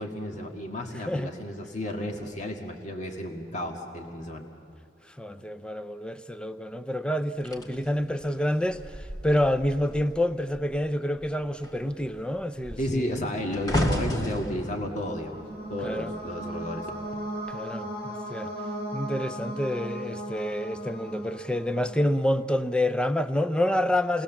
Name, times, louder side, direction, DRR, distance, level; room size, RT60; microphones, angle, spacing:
voice 1, 0.0-4.5 12.8-15.4 15.7-16.9, left 1 dB, 45° left, 1.9 m, -32 dB
voice 2, 5.2-13.1 15.8-16.1 17.5-18.5 18.9-24.2, left 1 dB, 5° left, 0.6 m, -28 dB
sound 1, 7.4-10.2 10.5-10.8 11.2-16.5 17.2-17.5, equal, 25° left, 2.0 m, -33 dB
sound 2, 14.6-22.3, right 1 dB, 75° left, 7.1 m, -37 dB
28.5 x 20.0 x 7.2 m
head